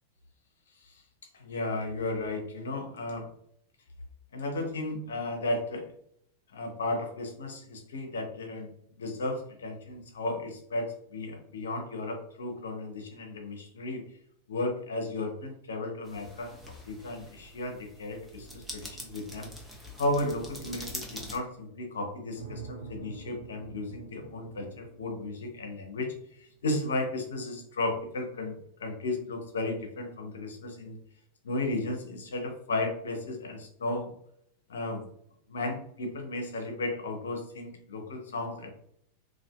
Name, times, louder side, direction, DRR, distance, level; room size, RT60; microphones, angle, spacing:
voice 1, 1.3-3.3 4.3-5.9 6.5-8.7 9.0-14.0 14.5-16.5 16.8-19.5 20.0-31.0 31.4-34.1 34.7-35.0 35.5-38.7, left 2 dB, 65° left, 4 dB, 0.6 m, -34 dB
sound 1, 16.0-21.4, equal, 5° right, 0.6 m, -44 dB
sound 2, 22.3-26.5, right 4 dB, 80° right, 0.5 m, -46 dB
2.5 x 2.4 x 2.2 m, 0.70 s
figure-of-eight pair, 90°, 0 cm